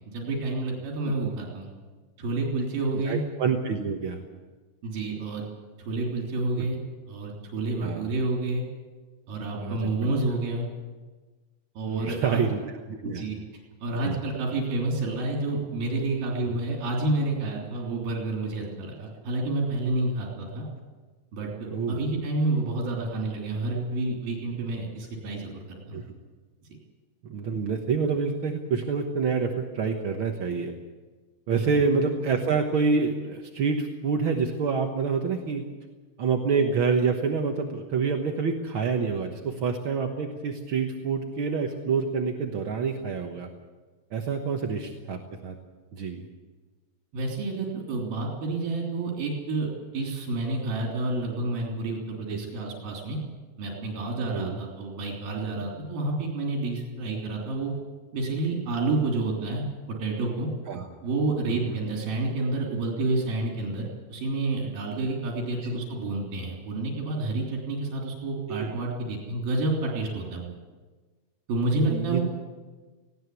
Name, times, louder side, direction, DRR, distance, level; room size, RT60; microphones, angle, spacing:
voice 1, 0.1-1.7 2.2-3.2 4.8-5.4 5.9-6.8 7.1-8.6 9.3-10.7 11.8-12.4 13.0-13.4 13.8-20.7 21.3-26.0 31.5-31.7 47.1-49.7 49.9-53.2 53.6-57.7 58.1-60.5 61.0-63.8 64.1-70.5 71.5-72.2, right 2 dB, 80° right, -1 dB, 5.0 m, -29 dB
voice 2, 3.0-4.2 6.6-6.7 7.8-8.1 9.6-10.1 11.9-13.3 14.0-14.2 16.4-16.6 21.7-22.0 25.9-26.0 27.3-30.7 31.5-35.6 36.2-43.5 44.1-45.5 45.9-46.3 52.3-52.5 54.3-54.6 60.7-60.9 61.7-61.8 65.6-65.7 68.5-68.8 71.9-72.2, right 5 dB, 60° right, 3 dB, 1.4 m, -27 dB
19.0 x 18.0 x 8.4 m, 1.3 s
omnidirectional pair, 4.0 m